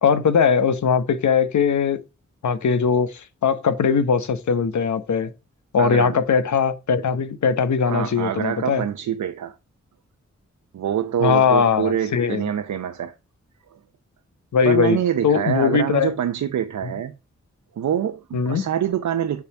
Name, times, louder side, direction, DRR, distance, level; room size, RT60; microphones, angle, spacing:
voice 1, 0.0-2.0 2.4-5.3 5.7-8.8 11.2-12.4 14.5-15.0 15.2-16.1 16.8-16.9 18.3-18.6, left 6 dB, 75° left, 1.0 m, -20 dB
voice 2, 5.8-6.2 7.9-9.5 10.7-13.1 14.6-17.2 17.8-19.4, right 9 dB, 85° right, 0.7 m, -25 dB
7.1 x 4.0 x 5.7 m
cardioid pair, 65°, 29 cm